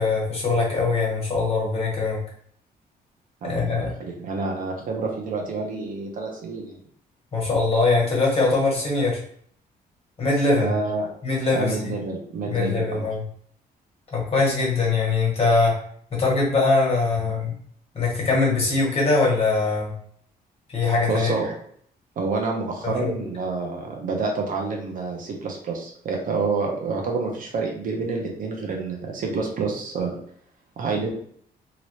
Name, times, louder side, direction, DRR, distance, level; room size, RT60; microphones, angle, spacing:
voice 1, 0.0-2.2 3.4-3.9 7.3-9.2 10.2-10.7 11.2-11.7 12.5-13.2 14.1-15.7 16.2-17.5 17.9-19.9 20.7-21.3 23.0-23.1, left 3 dB, 40° left, -3 dB, 1.3 m, -22 dB
voice 2, 3.4-6.8 10.5-11.1 11.5-13.1 21.1-21.6 22.2-30.2 30.8-31.1, right 4 dB, 60° right, 1 dB, 0.8 m, -28 dB
3.0 x 2.6 x 3.0 m, 0.63 s
cardioid pair, 120°, 16 cm